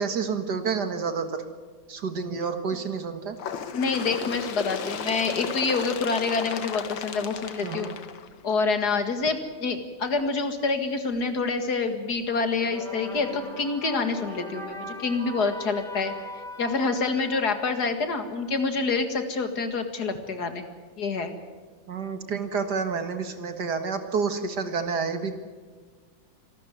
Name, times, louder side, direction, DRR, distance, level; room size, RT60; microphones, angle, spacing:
voice 1, 0.0-1.4 1.9-3.4 7.6-7.9 21.9-25.3, right 5 dB, 60° right, 8 dB, 2.2 m, -29 dB
Bird, 3.4-8.8 9.7-9.8 10.2-10.3 11.2-11.3 12.2-12.3 13.2-13.3, left 7 dB, 80° left, 2.0 m, -34 dB
voice 2, 3.7-7.9 8.4-16.1 16.6-20.7 21.0-21.3, left 4 dB, 55° left, 8 dB, 2.4 m, -27 dB
sound 1, 12.4-18.8, left 1 dB, ahead, 2.8 m, -41 dB
26.0 x 13.0 x 9.4 m, 1.5 s
omnidirectional pair, 2.0 m